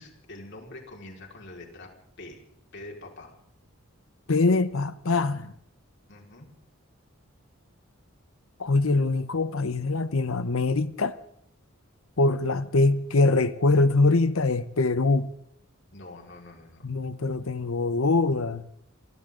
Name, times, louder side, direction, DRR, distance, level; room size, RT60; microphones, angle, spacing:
voice 1, 0.0-2.4 2.7-3.3 6.1-6.5 15.9-16.9, left 2 dB, 60° left, 4.9 m, -45 dB
voice 2, 4.3-5.5 8.6-11.2 12.2-15.3 16.8-18.7, left 3 dB, 75° left, 0.9 m, -23 dB
28.0 x 24.0 x 3.9 m
head